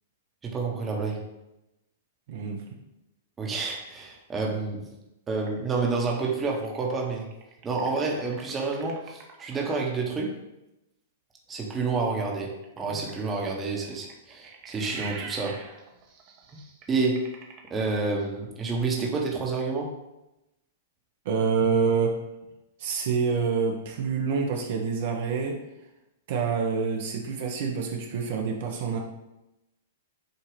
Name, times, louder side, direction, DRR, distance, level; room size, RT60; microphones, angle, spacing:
voice 1, 0.4-1.3 3.4-4.9 5.3-7.3 7.6-10.3 11.5-15.6 16.9-17.2 17.7-19.9, right 4 dB, 20° right, -1 dB, 1.3 m, -29 dB
voice 2, 2.3-2.6 21.2-22.1 22.8-25.6 26.3-29.0, right 5 dB, 60° right, 1 dB, 1.1 m, -27 dB
sound 1, 5.5-9.5 12.4-18.5, right 5 dB, 40° right, 1.2 m, -45 dB
8.0 x 2.8 x 5.1 m, 0.93 s
hypercardioid pair, 115°, 0 cm